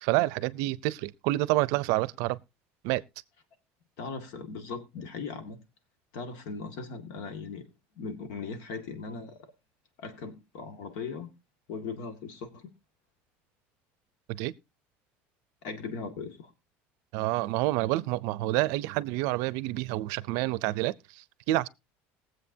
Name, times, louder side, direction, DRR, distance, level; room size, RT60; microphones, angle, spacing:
voice 1, 0.0-2.4 2.8-3.0 14.3-14.5 17.1-21.7, right 18 dB, 70° right, 0.5 m, -28 dB
voice 2, 4.0-5.6 6.1-7.6 8.0-9.4 10.0-11.3 11.7-12.7 15.6-16.5, left 4 dB, 70° left, 2.0 m, -38 dB
21.0 x 7.7 x 2.7 m
cardioid pair, 140°, 6 cm